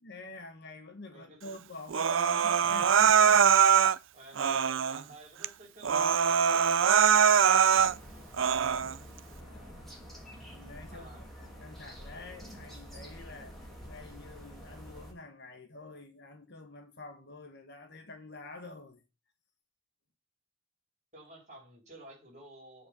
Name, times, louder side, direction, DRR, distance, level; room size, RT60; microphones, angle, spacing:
voice 1, 0.0-3.4 8.6-8.8 9.4-9.8 10.5-19.0, left 2 dB, 50° left, 1.4 m, -48 dB
voice 2, 1.1-1.5 4.1-7.8 8.1-8.2 10.9-11.3 21.1-22.9, right 1 dB, 35° right, 4.5 m, -53 dB
Human voice, 1.9-4.0 4.4-5.0 5.4-5.5 5.8-7.9 8.3-8.9, right 7 dB, 60° right, 0.4 m, -23 dB
sound 1, 7.7-15.1, equal, ahead, 2.7 m, -48 dB
8.0 x 4.6 x 6.7 m
head